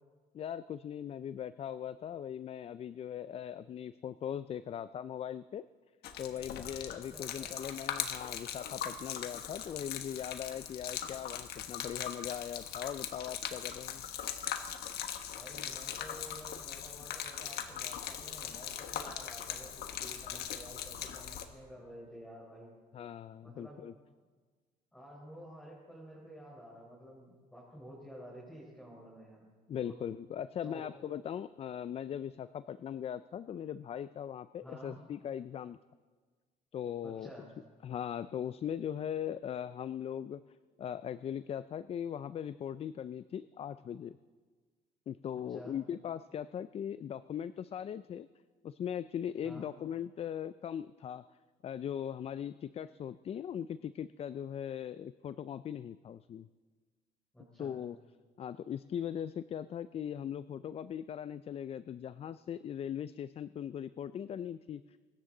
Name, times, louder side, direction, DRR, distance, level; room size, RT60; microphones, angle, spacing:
voice 1, 0.3-5.6 6.2-14.0 22.9-23.9 29.7-35.8 36.7-37.3 37.8-40.4 40.8-44.2 45.1-48.3 48.6-51.4 51.6-56.5 57.6-58.0 58.4-64.8, left 9 dB, 35° left, 15 dB, 0.4 m, -39 dB
Gurgling / Liquid, 6.0-21.4, left 9 dB, 70° left, 1.3 m, -40 dB
voice 2, 7.1-7.6 15.4-22.7 23.4-23.8 24.9-29.9 30.6-30.9 34.6-35.0 37.0-37.5 45.5-45.8 49.4-49.7 57.3-57.8, equal, 5° left, -5 dB, 4.3 m, -51 dB
23.5 x 14.0 x 3.8 m, 1.5 s
cardioid pair, 110°, 17 cm